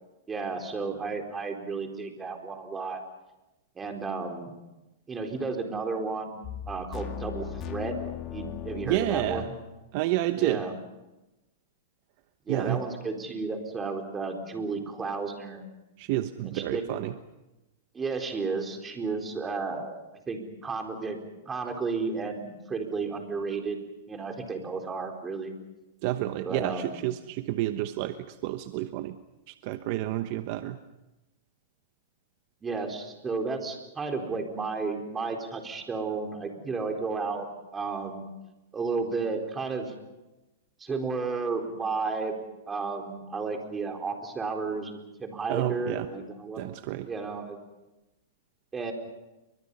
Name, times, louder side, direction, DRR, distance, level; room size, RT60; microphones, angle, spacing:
voice 1, 0.3-3.0 3.8-4.6 5.1-8.0 8.3-9.5 10.3-10.7 12.5-15.6 16.4-16.9 17.9-20.0 20.3-21.2 21.5-23.8 24.1-25.5 26.4-27.0 32.6-37.5 37.7-38.3 38.7-39.9 40.8-42.4 42.7-46.7 47.0-47.6 48.7-48.9, right 4 dB, 15° right, 3 dB, 4.2 m, -33 dB
sound 1, 6.4-9.6, left 9 dB, 35° left, 2.1 m, -37 dB
voice 2, 8.8-9.5 9.9-10.6 12.5-12.8 16.0-17.1 26.0-29.2 29.5-30.8 45.5-46.0 46.6-47.1, right 15 dB, 50° right, 9 dB, 1.1 m, -29 dB
30.0 x 24.0 x 5.6 m, 1.0 s
hypercardioid pair, 135°, 0 cm